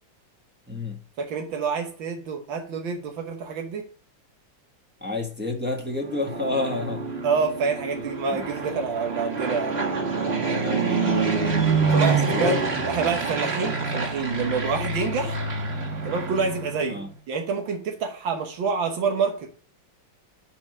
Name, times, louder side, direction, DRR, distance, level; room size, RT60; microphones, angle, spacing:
voice 1, 0.7-1.0 5.0-7.1 8.3-8.4 10.5-11.5 11.8-12.6 13.0-13.1 16.9-17.1, left 2 dB, 5° right, 1.1 m, -30 dB
voice 2, 1.2-3.9 7.2-10.6 11.9-15.4 16.1-17.0 17.3-19.6, right 5 dB, 85° right, 1.9 m, -27 dB
Fixed-wing aircraft airplane, 5.9-17.0, right 4 dB, 35° right, 1.8 m, -26 dB
7.1 x 5.3 x 6.1 m
omnidirectional pair, 2.1 m